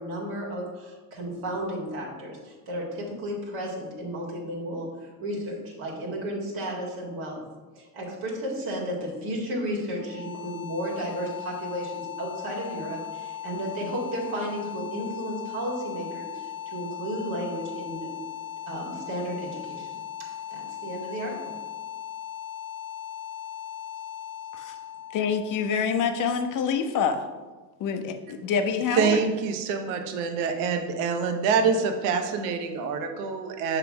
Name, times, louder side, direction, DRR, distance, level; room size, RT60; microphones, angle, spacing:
voice 1, 0.0-7.4 7.8-18.2 18.7-21.6, equal, 55° right, -3 dB, 1.9 m, -33 dB
sound 1, 10.0-26.9, left 9 dB, 85° left, 0.7 m, -38 dB
voice 2, 25.1-27.2 27.8-29.2, left 6 dB, 45° left, 7 dB, 0.8 m, -26 dB
voice 3, 28.9-33.8, right 5 dB, 70° right, 6 dB, 0.8 m, -26 dB
6.0 x 3.3 x 4.7 m, 1.3 s
supercardioid pair, 85°, 45 cm